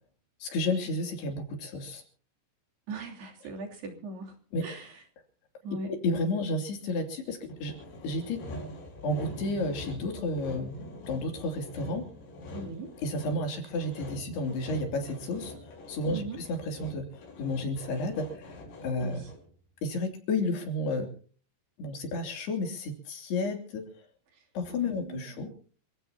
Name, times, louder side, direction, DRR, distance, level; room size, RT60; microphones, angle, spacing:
voice 1, 0.4-2.0 4.5-4.6 5.9-7.7 8.0-8.4 9.0-10.7 11.1-12.0 13.0-19.2 19.8-21.1 21.8-24.1 24.5-25.5, left 2 dB, 65° left, 3 dB, 4.9 m, -32 dB
voice 2, 2.9-4.4 4.6-4.9 5.6-6.0 12.5-12.9 16.1-16.4 19.0-19.3 24.7-25.5, right 3 dB, 65° right, 0 dB, 5.1 m, -39 dB
Sawing, 7.5-19.6, left 1 dB, 90° left, 6.8 m, -44 dB
28.0 x 16.5 x 2.9 m, 0.42 s
omnidirectional pair, 5.1 m